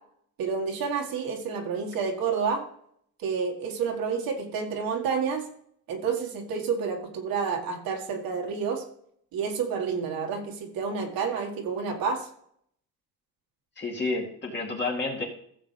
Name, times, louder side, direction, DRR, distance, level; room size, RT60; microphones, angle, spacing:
voice 1, 0.4-2.6 3.2-5.4 5.9-8.8 9.3-12.3, right 5 dB, 70° right, 2 dB, 1.9 m, -29 dB
voice 2, 13.8-15.2, left 3 dB, 30° left, -2 dB, 2.4 m, -30 dB
15.0 x 7.2 x 3.4 m, 0.67 s
cardioid pair, 120°, 36 cm